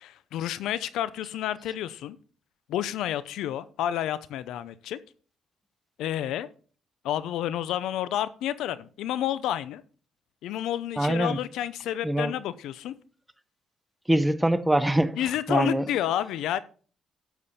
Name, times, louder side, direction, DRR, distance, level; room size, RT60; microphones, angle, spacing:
voice 1, 0.0-2.2 2.7-5.0 6.0-6.5 7.0-9.8 10.4-12.9 15.2-16.6, left 11 dB, 85° left, 0.6 m, -30 dB
voice 2, 11.0-11.4 12.0-12.3 14.1-15.2 15.5-15.8, right 1 dB, 10° right, 0.9 m, -23 dB
12.0 x 7.0 x 4.2 m
cardioid pair, 90°, 0 cm